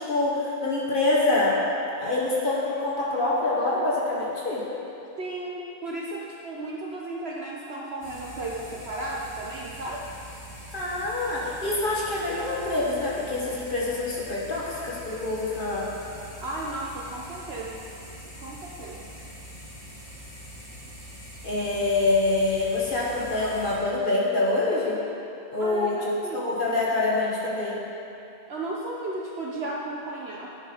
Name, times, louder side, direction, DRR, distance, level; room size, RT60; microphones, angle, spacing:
voice 1, 0.0-1.6 2.0-4.7 10.7-15.9 21.4-25.0 25.5-27.8, left 2 dB, 35° left, -5 dB, 1.5 m, -26 dB
voice 2, 5.2-10.1 16.4-17.8 18.4-19.1 25.6-26.5 28.5-30.6, right 2 dB, 55° right, -3 dB, 0.8 m, -34 dB
sound 1, 8.0-23.8, equal, 15° left, 1.7 m, -43 dB
10.0 x 5.5 x 4.8 m, 2.7 s
omnidirectional pair, 1.6 m